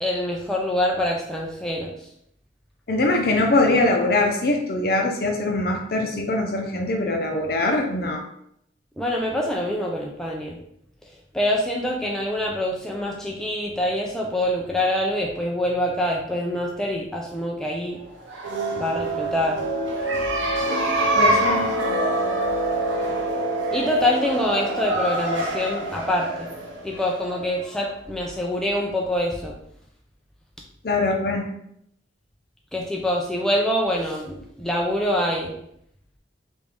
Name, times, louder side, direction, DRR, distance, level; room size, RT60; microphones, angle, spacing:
voice 1, 0.0-2.1 9.0-10.6 11.3-18.0 18.8-19.6 23.7-26.5 26.8-29.6 32.7-35.6, left 1 dB, 5° left, -2 dB, 0.3 m, -25 dB
voice 2, 2.9-8.2 21.1-21.7 30.8-31.5, left 2 dB, 50° left, 2 dB, 0.6 m, -22 dB
sound 1, 18.2-27.7, right 1 dB, 85° right, 0.7 m, -25 dB
3.4 x 2.5 x 3.3 m, 0.72 s
head